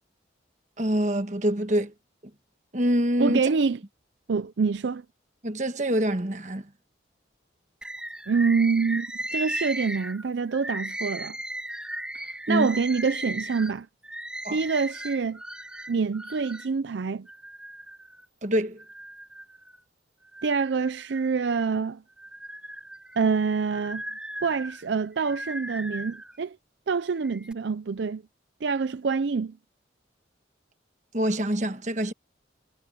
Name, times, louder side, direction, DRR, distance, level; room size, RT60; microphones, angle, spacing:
voice 1, 0.8-1.9 2.7-3.5 5.4-6.7 12.5-12.7 14.4-14.6 18.4-18.8 31.1-32.1, equal, 40° right, 1.4 m, -25 dB
voice 2, 3.2-3.8 4.3-5.0 8.3-9.1 9.3-11.4 12.1-13.9 14.5-15.4 15.9-17.3 20.4-22.0 23.2-24.0 24.4-26.6 26.9-28.2 28.6-29.6, right 5 dB, 70° right, 0.5 m, -26 dB
Bird, 7.8-16.7 17.3-18.2 18.8-19.8 20.2-21.6 22.1-26.4 27.1-27.5, right 1 dB, 5° right, 1.9 m, -37 dB
head